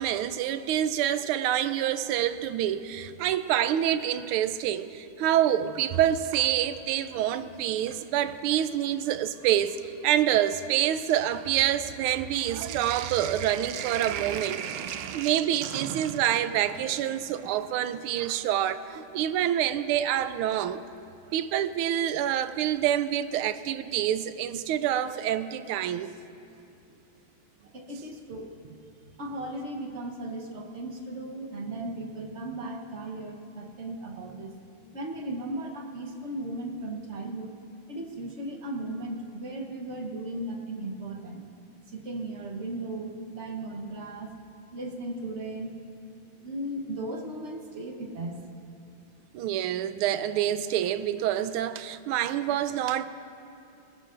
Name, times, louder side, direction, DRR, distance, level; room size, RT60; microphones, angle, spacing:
voice 1, 0.0-14.6 15.1-20.8 21.3-26.2 49.3-53.1, right 11 dB, 90° right, 12 dB, 1.5 m, -27 dB
Sink (filling or washing), 5.3-7.3 7.6-8.5 9.3-9.4 9.6-18.8 20.5-20.6 22.4-22.9 23.2-23.3 23.5-23.6, right 9 dB, 75° right, 1.1 m, -40 dB
voice 2, 27.7-28.8 29.2-34.6 34.9-37.5 37.9-41.5 41.9-44.3 44.7-45.7 46.4-48.4, right 1 dB, 45° right, 2 dB, 1.0 m, -36 dB
19.5 x 17.0 x 2.5 m, 2.6 s
omnidirectional pair, 2.3 m